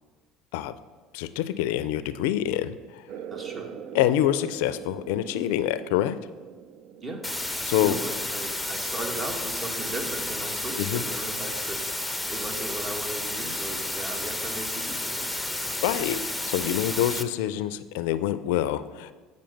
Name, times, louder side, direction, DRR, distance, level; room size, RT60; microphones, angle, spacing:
voice 1, 1.1-3.1 3.9-6.2 7.6-8.0 10.8-11.0 15.8-19.1, left 12 dB, 75° left, 14 dB, 0.4 m, -26 dB
sound 1, 3.1-10.2, right 8 dB, 60° right, 0.5 m, -43 dB
voice 2, 3.3-3.7 7.0-7.2 7.7-15.8, right 2 dB, 35° right, 3 dB, 1.7 m, -37 dB
sound 2, 7.2-17.2, left 1 dB, 5° left, 0.7 m, -31 dB
8.7 x 5.4 x 5.2 m, 1.3 s
hypercardioid pair, 75°, 0 cm